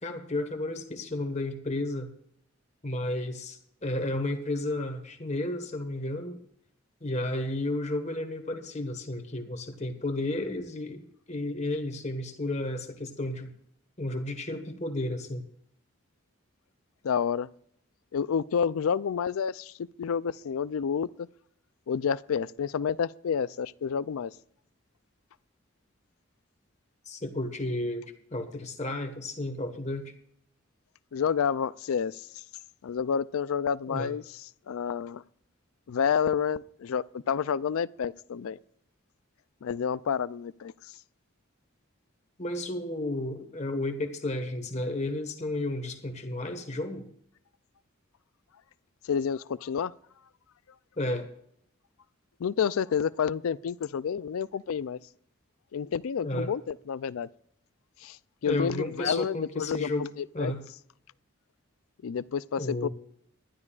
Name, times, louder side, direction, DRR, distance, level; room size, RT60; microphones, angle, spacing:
voice 1, 0.0-2.1 2.8-6.4 7.0-13.5 14.0-15.4 27.0-28.0 28.3-30.1 33.9-34.1 42.4-47.1 51.0-51.3 56.2-56.5 58.4-60.1 60.3-60.6 62.6-62.9, left 1 dB, 30° left, 1.4 m, -32 dB
voice 2, 17.0-17.5 18.1-21.1 21.9-24.3 31.1-32.3 32.8-34.2 34.7-35.2 35.9-38.6 39.6-40.7 49.0-49.9 52.4-55.0 55.7-57.3 58.0-58.2 58.4-60.5 62.0-62.9, left 7 dB, 85° left, 0.4 m, -29 dB
20.5 x 12.0 x 2.4 m
head